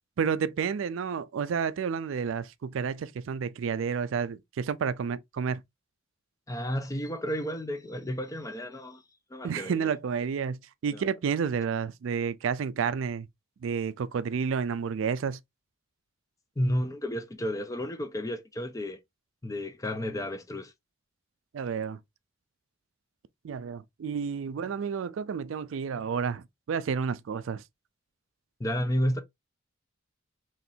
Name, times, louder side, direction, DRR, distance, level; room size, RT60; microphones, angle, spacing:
voice 1, 0.2-5.6 9.4-13.3 13.6-15.4 21.5-22.0 23.4-27.6, right 6 dB, 70° right, 0.4 m, -30 dB
voice 2, 6.5-9.0 9.3-9.9 10.9-11.0 16.6-19.0 19.4-20.7 28.6-29.2, equal, 15° left, 0.5 m, -32 dB
4.3 x 3.1 x 2.6 m
head